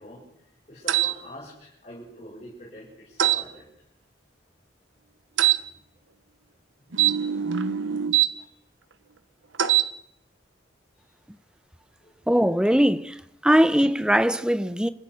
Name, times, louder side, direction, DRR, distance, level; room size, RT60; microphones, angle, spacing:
voice 1, 0.0-3.6 8.3-8.5 12.0-12.2, left 1 dB, 35° left, 7.4 m, -45 dB
sound 1, 0.9-1.1 3.2-3.4 5.4-5.6 6.9-8.3 9.5-9.9, right 12 dB, 85° right, 1.2 m, -22 dB
voice 2, 12.3-13.2 13.4-14.9, equal, 5° right, 0.7 m, -20 dB
29.0 x 16.0 x 6.4 m
head